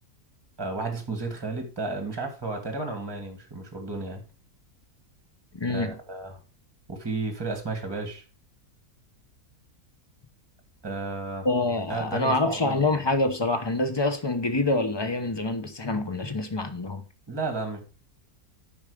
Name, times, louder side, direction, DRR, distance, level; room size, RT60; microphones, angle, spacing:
voice 1, 0.6-4.2 5.7-6.4 6.9-8.2 10.8-11.5 11.9-13.1 17.3-17.8, right 3 dB, 15° right, 1.8 m, -33 dB
voice 2, 5.5-5.9 11.4-17.0, left 2 dB, 20° left, 0.8 m, -26 dB
8.9 x 5.5 x 5.0 m
omnidirectional pair, 1.6 m